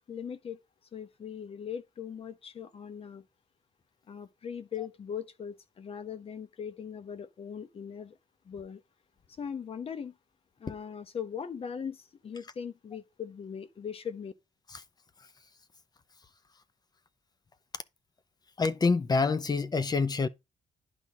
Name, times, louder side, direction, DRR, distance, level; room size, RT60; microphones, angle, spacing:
voice 1, 0.1-0.6 0.9-3.2 4.1-8.2 8.4-8.8 9.4-10.1 10.6-14.3, left 7 dB, 50° left, 1.0 m, -40 dB
voice 2, 18.6-20.3, left 4 dB, 30° left, 0.7 m, -27 dB
11.0 x 4.1 x 3.6 m
cardioid pair, 85°, 13 cm